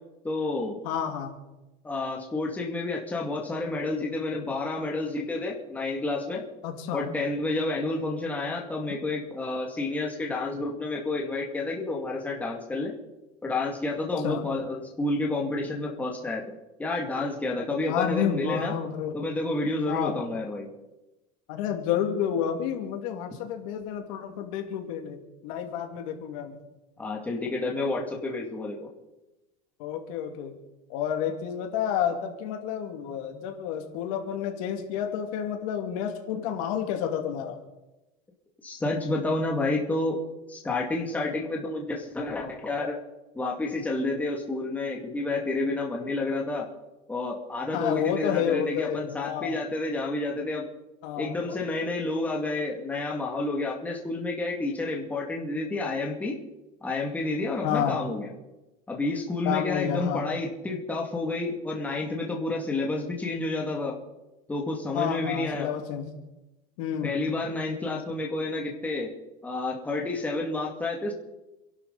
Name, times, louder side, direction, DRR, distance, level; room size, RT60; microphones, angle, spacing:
voice 1, 0.2-0.8 1.8-6.4 6.9-12.9 13.4-18.7 19.1-20.7 27.0-28.9 38.6-40.2 40.5-43.0 43.3-46.7 47.1-50.6 51.2-56.4 56.8-58.3 58.9-64.0 64.5-65.7 67.0-69.1 69.4-71.1, left 2 dB, 10° left, -1 dB, 2.4 m, -30 dB
voice 2, 0.8-1.4 6.6-7.1 14.2-14.4 17.9-19.2 19.9-20.2 21.5-26.6 29.8-30.5 30.9-37.6 47.7-49.6 51.0-51.6 52.8-52.9 57.6-58.0 59.4-60.4 64.9-66.1 66.8-67.2, left 9 dB, 60° left, 5 dB, 2.5 m, -30 dB
28.0 x 12.0 x 4.2 m, 1.0 s
supercardioid pair, 160°, 19 cm